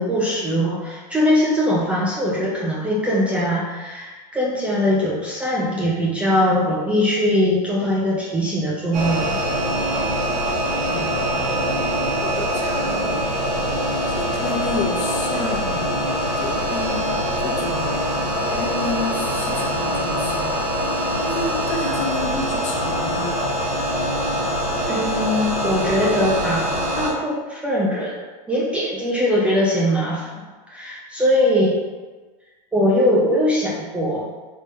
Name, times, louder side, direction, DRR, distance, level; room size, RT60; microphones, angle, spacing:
voice 1, 0.0-9.4 24.9-28.2 28.5-30.4 30.7-31.8 32.7-34.3, left 1 dB, 5° right, -7 dB, 0.4 m, -21 dB
sound 1, 8.9-27.1, equal, 90° right, 1.3 m, -23 dB
voice 2, 10.8-11.2 12.2-13.3 14.1-15.9 16.4-17.1 17.4-17.9 18.4-20.6 21.2-23.4, left 3 dB, 35° left, -1 dB, 0.7 m, -30 dB
3.5 x 3.2 x 2.7 m, 1.3 s
supercardioid pair, 140°, 21 cm